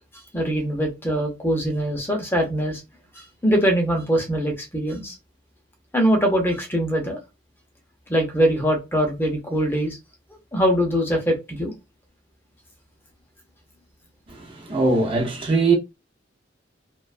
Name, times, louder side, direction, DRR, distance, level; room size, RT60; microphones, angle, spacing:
voice 1, 0.3-2.8 3.1-5.2 5.9-7.2 8.1-10.0 10.5-11.7, equal, 10° left, 0.6 m, -22 dB
voice 2, 14.3-15.8, right 3 dB, 30° right, 0.5 m, -21 dB
2.4 x 2.1 x 2.4 m
head